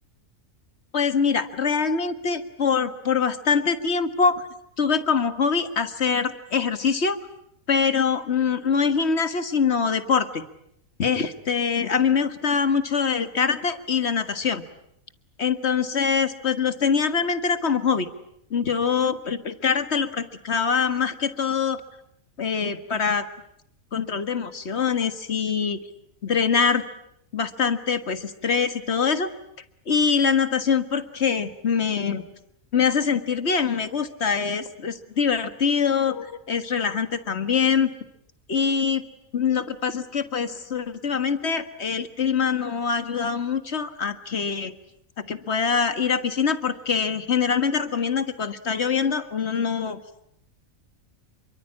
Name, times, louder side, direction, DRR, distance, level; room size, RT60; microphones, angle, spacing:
voice 1, 0.9-4.4 4.8-7.2 7.7-10.4 11.0-14.6 15.4-18.1 18.5-21.8 22.4-23.3 23.9-25.8 26.2-26.8 27.3-29.3 29.9-32.2 32.7-37.9 38.5-39.0 39.3-44.7 45.2-50.0, left 6 dB, 55° left, 10 dB, 1.8 m, -24 dB
28.0 x 24.0 x 8.7 m, 0.76 s
omnidirectional pair, 1.4 m